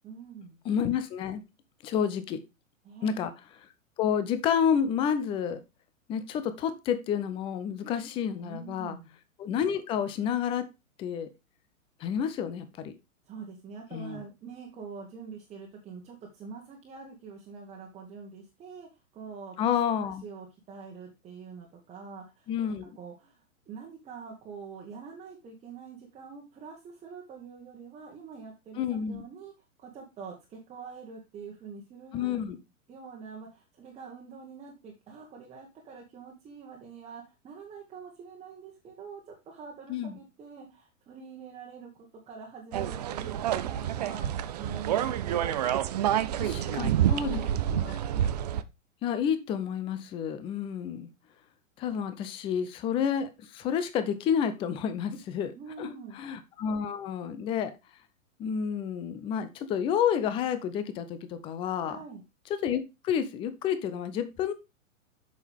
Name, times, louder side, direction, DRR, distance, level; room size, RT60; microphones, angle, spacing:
voice 1, 0.0-0.6 2.8-3.2 8.4-9.1 13.3-19.6 20.0-22.5 23.0-29.5 29.8-32.4 32.9-44.3 44.6-45.7 46.4-48.0 55.1-55.2 55.5-56.2 61.9-62.2, right 5 dB, 15° right, -1 dB, 1.5 m, -45 dB
voice 2, 0.6-1.4 1.8-2.4 3.0-3.3 4.0-5.6 6.1-9.0 9.4-10.6 11.0-11.3 12.0-12.9 13.9-14.2 19.6-20.2 22.5-22.9 28.8-29.2 32.1-32.6 39.9-40.2 46.4-47.4 47.7-48.0 49.0-51.1 51.8-55.5 55.8-57.7 58.4-62.0 62.5-64.5, left 8 dB, 15° left, 11 dB, 0.6 m, -30 dB
sound 1, 42.7-48.6, right 11 dB, 30° right, 0.5 m, -28 dB
8.2 x 6.4 x 3.4 m, 0.25 s
figure-of-eight pair, 110°, 41 cm